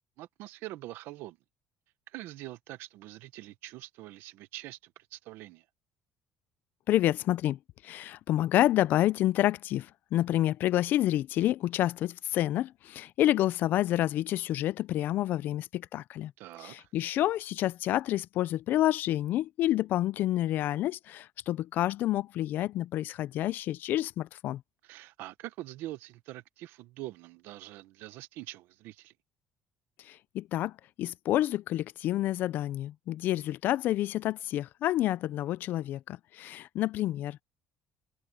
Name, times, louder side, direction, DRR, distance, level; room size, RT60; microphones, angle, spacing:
voice 1, 0.2-1.4 2.1-5.6 16.4-16.9 24.8-29.1, right 16 dB, 75° right, 1.1 m, -44 dB
voice 2, 6.9-16.3 16.6-24.6 30.1-37.4, left 14 dB, 55° left, 0.4 m, -29 dB
cardioid pair, 150°, 4 cm